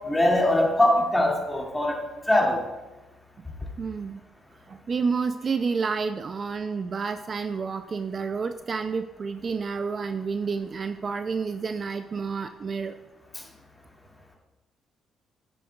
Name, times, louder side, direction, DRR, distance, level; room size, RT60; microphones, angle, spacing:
voice 1, 0.1-2.0 2.3-2.6, left 1 dB, 10° left, -2 dB, 2.1 m, -21 dB
voice 2, 3.8-4.2 4.7-13.0, right 5 dB, 40° right, 9 dB, 0.4 m, -29 dB
10.0 x 8.5 x 2.3 m, 1.1 s
cardioid pair, 90°, 0 cm